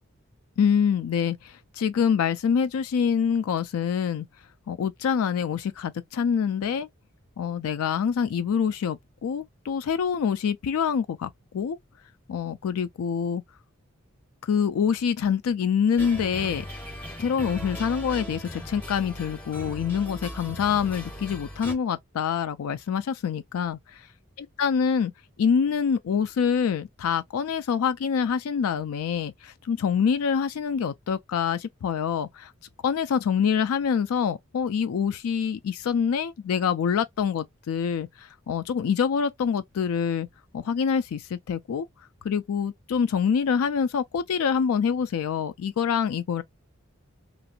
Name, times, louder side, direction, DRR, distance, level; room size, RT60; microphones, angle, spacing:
voice 1, 0.6-4.3 4.7-6.9 7.4-11.8 12.3-13.4 14.4-16.6 17.2-23.8 24.4-25.1 25.4-32.5 32.8-40.3 40.5-41.9 42.2-46.4, left 7 dB, 85° left, 0.4 m, -26 dB
sound 1, 16.0-21.7, equal, 10° left, 0.7 m, -38 dB
2.9 x 2.5 x 2.7 m
head